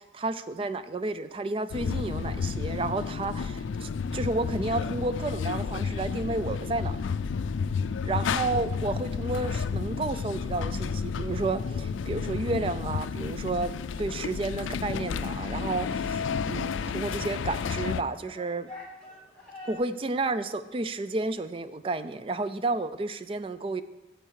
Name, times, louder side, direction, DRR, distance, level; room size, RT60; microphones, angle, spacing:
voice 1, 0.0-7.0 8.1-18.7 19.6-23.8, right 3 dB, 30° right, 12 dB, 0.3 m, -31 dB
sound 1, 1.7-18.0, left 5 dB, 90° left, 0.4 m, -31 dB
sound 2, 17.4-19.8, left 2 dB, 5° left, 1.8 m, -50 dB
8.8 x 7.2 x 4.7 m, 1.0 s
head